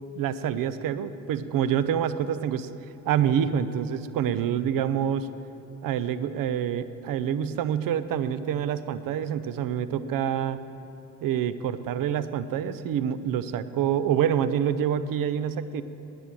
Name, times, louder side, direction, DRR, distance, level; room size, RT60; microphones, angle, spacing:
voice 1, 0.1-2.7 3.1-5.3 5.8-10.6 11.2-15.8, right 9 dB, 65° right, 14 dB, 0.6 m, -27 dB
10.0 x 9.5 x 7.4 m, 2.9 s
hypercardioid pair, 50°, 36 cm